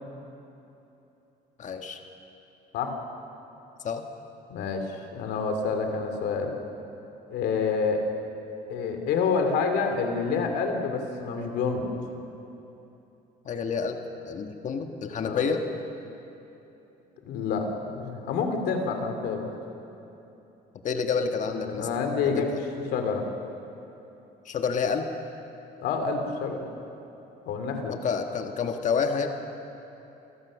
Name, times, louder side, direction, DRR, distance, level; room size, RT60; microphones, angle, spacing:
voice 1, 1.6-2.0 3.8-4.1 13.4-14.0 14.2-15.6 20.8-21.9 22.2-22.5 24.4-25.1 28.0-29.3, left 6 dB, 45° left, 4 dB, 1.5 m, -28 dB
voice 2, 4.5-6.5 7.3-8.1 8.7-11.9 15.2-15.4 17.2-19.5 21.4-22.5 22.9-23.2 25.8-26.7 27.4-28.0, left 5 dB, 80° left, 5 dB, 2.7 m, -28 dB
27.5 x 15.0 x 6.3 m, 2.9 s
cardioid pair, 110°, 17 cm